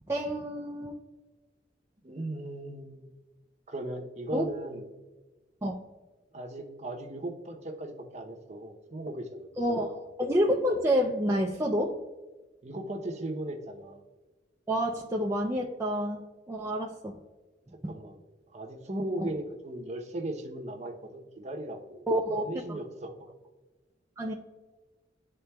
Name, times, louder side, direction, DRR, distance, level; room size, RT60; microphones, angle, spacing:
voice 1, 0.1-0.9 4.3-4.5 5.6-5.8 9.6-9.9 10.2-11.9 14.7-16.2 16.5-17.2 17.8-17.9 19.2-19.3 22.1-22.8 24.2-24.3, equal, 15° right, -2 dB, 0.4 m, -28 dB
voice 2, 2.0-3.1 3.7-4.8 6.3-10.0 12.6-14.0 17.9-18.2 18.5-22.0 22.4-23.1, right 1 dB, 35° right, 2 dB, 0.7 m, -37 dB
11.5 x 3.8 x 2.3 m, 1.2 s
head